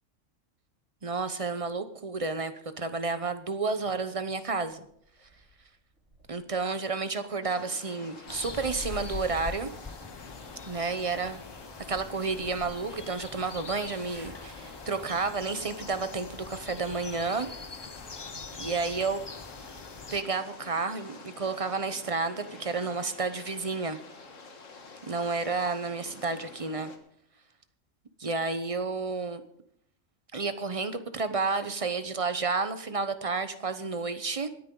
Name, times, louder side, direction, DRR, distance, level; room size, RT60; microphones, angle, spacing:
voice 1, 1.0-4.8 6.3-9.7 10.7-11.4 11.9-17.5 18.6-19.2 20.1-24.0 25.1-26.9 28.2-29.4 30.3-34.5, right 4 dB, 30° right, 10 dB, 0.8 m, -31 dB
sound 1, 3.6-4.3 4.7-6.6 7.1-7.2 8.2-9.6 11.3-11.4 12.3-12.4 13.7-15.1 15.5-15.9 16.5-16.6 17.5-17.6, right 1 dB, 55° right, 6.0 m, -55 dB
sound 2, 7.4-27.0, left 3 dB, 75° left, 1.9 m, -48 dB
sound 3, 8.3-20.2, left 4 dB, 30° left, 0.5 m, -43 dB
26.0 x 9.3 x 3.9 m, 0.71 s
omnidirectional pair, 1.3 m